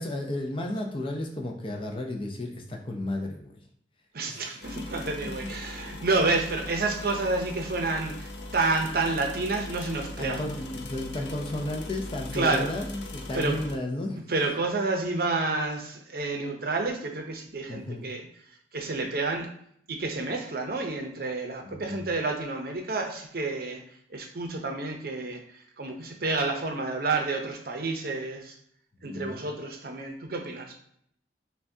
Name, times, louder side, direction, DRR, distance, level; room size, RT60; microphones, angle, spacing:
voice 1, 0.0-3.6 4.3-4.5 4.8-4.9 5.2-5.3 10.2-14.6 17.7-18.1 21.6-22.1 29.0-29.4, left 1 dB, 30° left, 2 dB, 0.5 m, -33 dB
voice 2, 4.1-10.5 12.3-12.7 13.3-13.5 14.3-18.2 18.7-19.5 19.9-23.8 24.1-25.4 25.8-28.5 29.0-30.8, right 3 dB, 55° right, 3 dB, 0.6 m, -29 dB
sound 1, 4.6-13.8, left 2 dB, 75° left, 0.5 m, -40 dB
5.7 x 2.3 x 2.7 m, 0.68 s
head